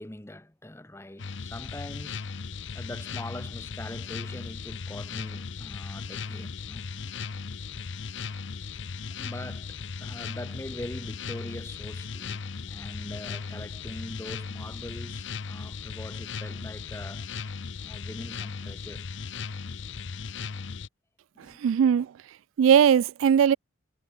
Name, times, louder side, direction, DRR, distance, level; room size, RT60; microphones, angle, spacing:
voice 1, 0.0-6.9 9.2-17.2 17.8-19.1 21.3-21.6, left 1 dB, 15° left, 0.9 m, -42 dB
sound 1, 1.2-20.9, left 5 dB, 65° left, 0.7 m, -37 dB
voice 2, 21.6-22.1 22.6-23.6, right 8 dB, 80° right, 0.3 m, -19 dB
head